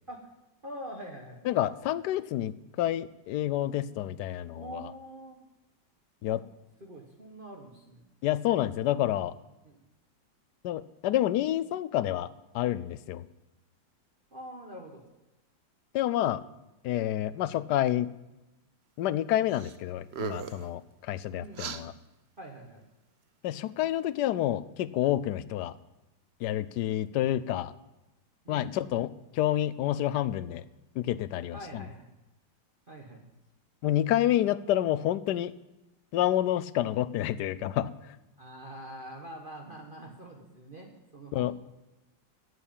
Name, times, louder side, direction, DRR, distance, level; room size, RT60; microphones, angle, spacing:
voice 1, 0.6-1.4 4.6-5.4 6.3-6.4 6.8-8.0 9.6-9.8 14.3-15.0 21.3-22.0 22.4-22.8 28.4-28.8 31.5-32.1 32.9-33.2 38.4-41.6, right 1 dB, 30° right, 0 dB, 1.4 m, -44 dB
voice 2, 1.5-4.8 6.2-6.4 8.2-9.3 10.6-12.3 12.5-13.2 15.9-16.4 16.8-18.1 19.0-20.8 21.1-21.9 23.4-25.7 26.4-27.7 28.5-30.6 31.0-31.6 33.8-35.5 36.1-37.9 41.3-41.5, left 13 dB, 70° left, 16 dB, 1.1 m, -28 dB
sound 1, 19.5-19.8 20.1-20.7 21.5-21.8, right 7 dB, 60° right, 0.7 m, -37 dB
11.5 x 8.1 x 8.7 m, 0.99 s
omnidirectional pair, 2.0 m